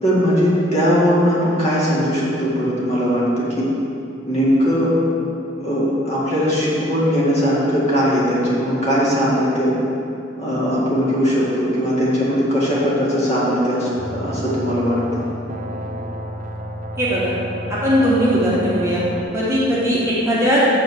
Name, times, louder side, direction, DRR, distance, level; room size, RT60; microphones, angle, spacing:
voice 1, 0.0-3.7 4.3-4.9 5.6-9.7 10.4-15.2, equal, 35° left, -7 dB, 2.0 m, -19 dB
sound 1, 14.0-19.2, right 1 dB, 45° right, 0.6 m, -31 dB
voice 2, 17.0-17.3 17.7-19.0 19.3-20.6, equal, 15° right, -8 dB, 1.2 m, -18 dB
7.7 x 4.5 x 6.3 m, 2.7 s
head